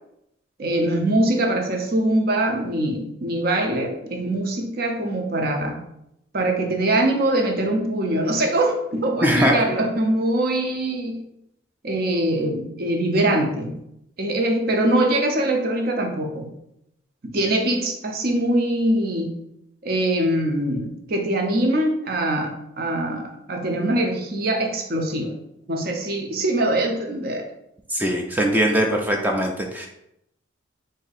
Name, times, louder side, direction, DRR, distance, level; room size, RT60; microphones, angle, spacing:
voice 1, 0.6-5.8 6.3-11.2 11.8-13.8 14.2-16.5 17.2-19.4 19.8-25.3 25.7-27.5, right 1 dB, 50° right, 2 dB, 0.6 m, -23 dB
voice 2, 9.2-9.6 27.9-29.9, equal, 10° right, 1 dB, 0.4 m, -21 dB
3.8 x 2.7 x 4.0 m, 0.81 s
head